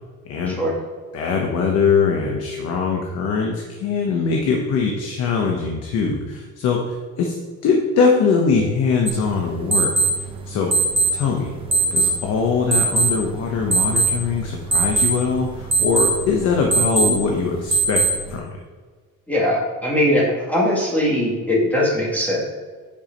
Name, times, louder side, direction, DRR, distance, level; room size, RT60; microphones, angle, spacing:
voice 1, 0.2-0.6 1.1-7.4 7.6-10.7 11.1-11.5 11.9-18.5, left 5 dB, 55° left, 1 dB, 1.0 m, -22 dB
sound 1, 9.1-18.4, right 3 dB, 15° right, 0.8 m, -22 dB
voice 2, 19.3-22.4, left 1 dB, 5° left, -3 dB, 1.9 m, -20 dB
8.8 x 4.8 x 5.2 m, 1.5 s
cardioid pair, 165°, 31 cm